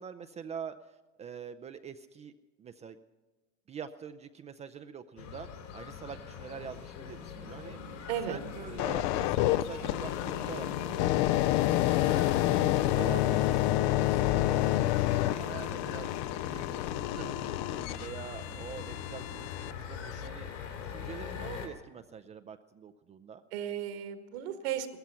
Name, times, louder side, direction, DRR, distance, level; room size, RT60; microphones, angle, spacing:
voice 1, 0.0-2.3 2.6-3.0 3.7-8.0 8.3-11.3 12.1-16.1 16.4-20.5 20.9-23.4, right 7 dB, 20° right, 9 dB, 0.5 m, -45 dB
sound 1, 5.2-21.7, left 6 dB, 75° left, 3.6 m, -40 dB
sound 2, 8.8-19.7 20.3-20.5, left 15 dB, 40° left, 0.5 m, -29 dB
voice 2, 17.2-17.5 23.5-24.9, right 10 dB, 60° right, 8 dB, 1.7 m, -35 dB
18.0 x 14.0 x 5.7 m, 1.2 s
hypercardioid pair, 105°, 36 cm